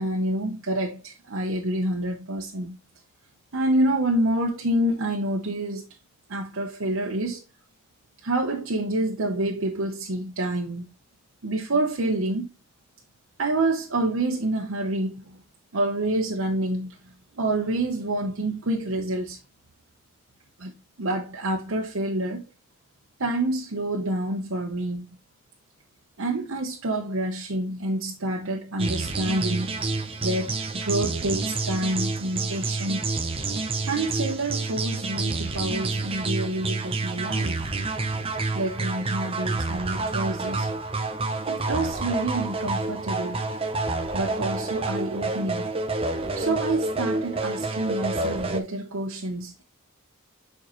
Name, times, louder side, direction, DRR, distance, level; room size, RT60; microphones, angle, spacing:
voice 1, 0.0-2.8 3.5-5.9 6.3-7.4 8.2-10.9 11.4-12.5 13.4-15.4 15.7-17.0 17.4-19.4 20.6-20.7 21.0-22.4 23.2-25.1 26.2-29.8 30.2-33.0 33.9-37.7 38.5-40.7 41.5-43.4 44.1-45.7 46.4-49.6, right 1 dB, 70° right, 0.9 m, -27 dB
sound 1, 28.8-48.6, right 3 dB, 25° right, 0.7 m, -28 dB
7.3 x 4.6 x 3.0 m
head